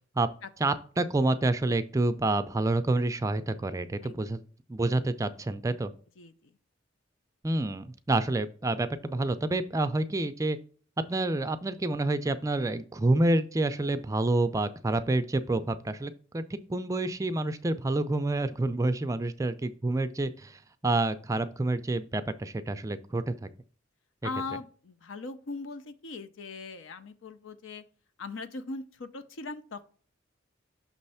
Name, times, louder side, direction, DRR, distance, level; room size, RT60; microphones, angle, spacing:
voice 1, 0.6-4.4 4.7-5.9 7.4-10.6 11.1-23.5, right 2 dB, 15° right, 10 dB, 0.3 m, -28 dB
voice 2, 6.2-6.5 24.2-27.8 28.2-29.9, left 3 dB, 75° left, 11 dB, 0.6 m, -39 dB
6.1 x 3.2 x 5.5 m, 0.42 s
head